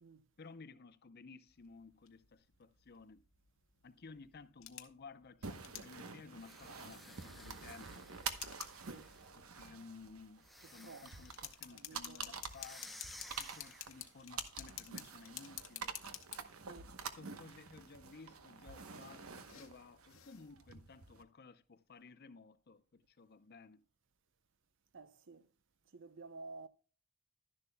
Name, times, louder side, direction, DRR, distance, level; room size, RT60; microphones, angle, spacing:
voice 1, 0.4-3.2 3.8-8.1 9.4-13.0 13.4-15.9 17.2-23.8, left 4 dB, 50° left, 0.6 m, -56 dB
sound 1, 1.5-20.5, left 12 dB, 70° left, 1.0 m, -54 dB
sound 2, 5.4-21.2, right 5 dB, 90° right, 1.0 m, -48 dB
sound 3, 6.3-9.3 10.4-11.6 12.5-14.2, left 1 dB, ahead, 0.7 m, -56 dB
voice 2, 11.7-12.4 16.6-16.9 24.9-25.4 25.9-26.7, right 3 dB, 60° right, 0.7 m, -52 dB
12.0 x 11.0 x 2.2 m
head